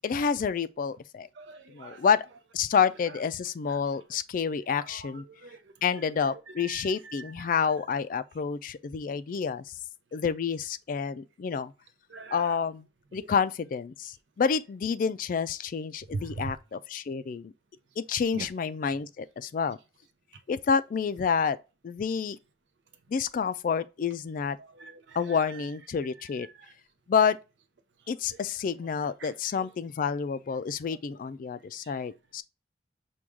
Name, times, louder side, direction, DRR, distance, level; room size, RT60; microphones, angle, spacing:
voice 1, 0.0-1.3 1.7-2.3 2.5-5.2 5.8-9.6 10.1-11.7 12.3-12.9 13.1-17.5 18.0-19.8 20.5-21.6 21.8-22.4 23.1-24.6 25.2-26.5 27.1-27.4 28.1-32.4, left 6 dB, 45° left, 0.3 m, -29 dB
voice 2, 1.3-2.1 3.7-4.0 4.7-5.7 6.3-7.6 12.1-12.6 16.1-16.6 18.3-18.5 20.3-20.4 24.6-25.7 26.2-26.7 28.3-28.4 29.2-29.7 30.9-31.0 31.8-31.9, right 3 dB, 80° right, 0.6 m, -43 dB
6.1 x 2.3 x 3.5 m
head